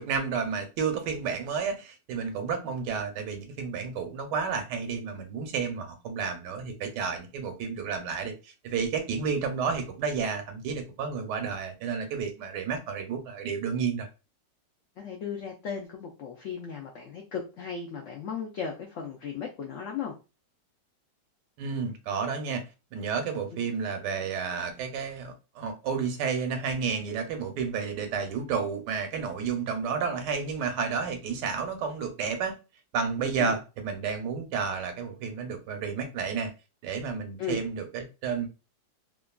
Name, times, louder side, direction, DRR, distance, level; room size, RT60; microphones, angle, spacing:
voice 1, 0.0-14.1 21.6-22.6 22.9-32.6 32.9-36.5 36.8-38.5, right 6 dB, 80° right, 1.2 m, -31 dB
voice 2, 15.0-20.2 33.4-33.6 37.4-37.6, left 6 dB, 85° left, 0.6 m, -36 dB
2.9 x 2.4 x 2.2 m
omnidirectional pair, 1.8 m